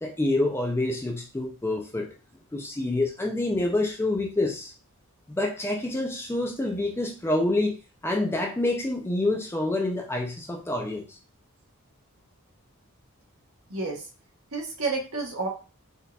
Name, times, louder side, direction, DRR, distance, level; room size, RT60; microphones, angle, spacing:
voice 1, 0.0-2.1 2.5-4.7 5.3-7.7 8.0-11.0, left 2 dB, 10° left, 1 dB, 0.3 m, -27 dB
voice 2, 13.7-14.0 14.5-15.5, right 3 dB, 65° right, 0 dB, 1.0 m, -30 dB
4.0 x 2.4 x 2.2 m, 0.35 s
head